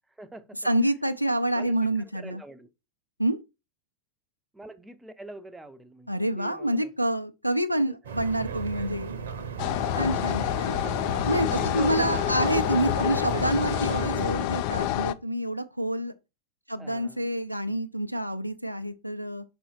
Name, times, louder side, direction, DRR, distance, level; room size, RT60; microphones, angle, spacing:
voice 1, 0.1-0.7 1.5-2.7 4.5-7.2 7.8-8.2 9.9-11.0 11.5-12.6 13.0-13.4 16.8-17.3, right 2 dB, 10° right, 0.6 m, -45 dB
voice 2, 0.6-2.4 3.2-3.4 6.1-9.2 10.0-10.4 11.2-11.5 11.7-16.1 16.7-19.4, right 1 dB, 90° right, 0.4 m, -27 dB
sound 1, 8.0-14.3, right 6 dB, 65° right, 0.8 m, -35 dB
sound 2, 9.6-15.1, left 14 dB, 45° left, 0.4 m, -28 dB
5.3 x 4.2 x 4.2 m
figure-of-eight pair, 90°, 0 cm